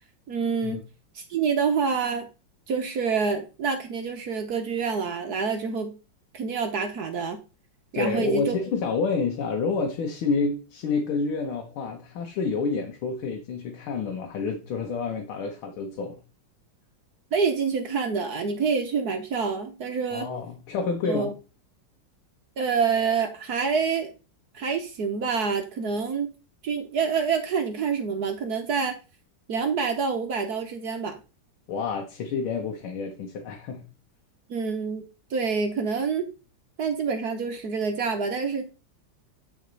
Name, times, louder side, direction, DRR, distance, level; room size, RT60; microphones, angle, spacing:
voice 1, 0.3-0.8 1.1-2.3 2.7-6.0 6.3-7.4 7.9-8.5 17.3-20.3 21.0-21.3 22.6-24.1 24.5-26.3 26.6-29.0 29.5-31.2 34.5-35.0 35.3-36.3 36.8-38.6, right 5 dB, 60° right, 1.2 m, -27 dB
voice 2, 7.9-16.2 20.1-21.3 31.7-33.9, left 4 dB, 85° left, 1.9 m, -29 dB
9.4 x 4.2 x 3.9 m
omnidirectional pair, 2.3 m